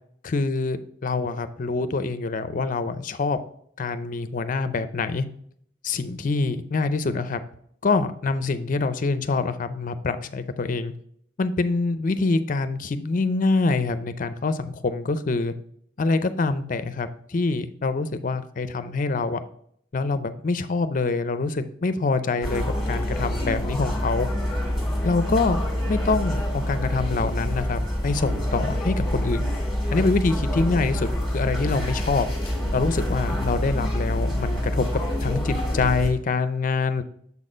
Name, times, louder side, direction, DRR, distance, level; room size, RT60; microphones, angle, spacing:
voice 1, 0.2-3.4 3.8-5.3 5.8-7.4 7.8-10.9 11.4-15.5 16.0-19.4 19.9-24.3 25.0-25.6 25.9-29.4 29.9-32.3 32.7-37.0, left 3 dB, 40° left, 11 dB, 0.5 m, -25 dB
sound 1, 22.4-36.1, left 1 dB, ahead, 1.8 m, -26 dB
7.1 x 4.2 x 4.9 m, 0.67 s
head